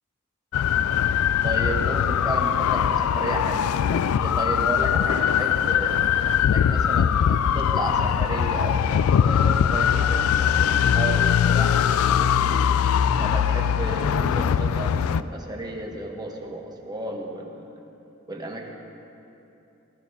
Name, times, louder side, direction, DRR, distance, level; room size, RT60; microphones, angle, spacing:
sound 1, 0.5-15.2, left 8 dB, 85° left, 0.3 m, -21 dB
voice 1, 1.4-6.0 6.4-12.8 13.2-17.7 18.3-18.7, right 1 dB, 20° right, 1 dB, 0.9 m, -33 dB
17.5 x 13.0 x 2.7 m, 2.9 s
head